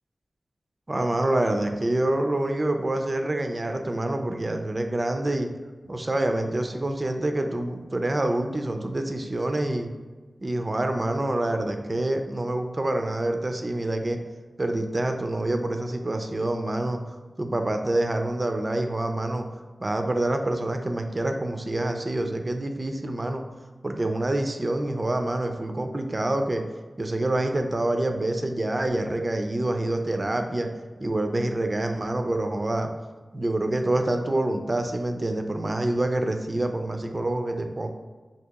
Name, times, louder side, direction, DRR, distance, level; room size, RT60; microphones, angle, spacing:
voice 1, 0.9-5.5 5.9-9.9 10.4-14.2 14.6-17.0 17.4-19.5 19.8-23.4 23.8-26.6 27.0-30.7 31.0-32.9 33.3-37.9, right 1 dB, 35° right, 5 dB, 0.4 m, -26 dB
2.9 x 2.7 x 3.4 m, 1.3 s
wide cardioid pair, 90°, 0 cm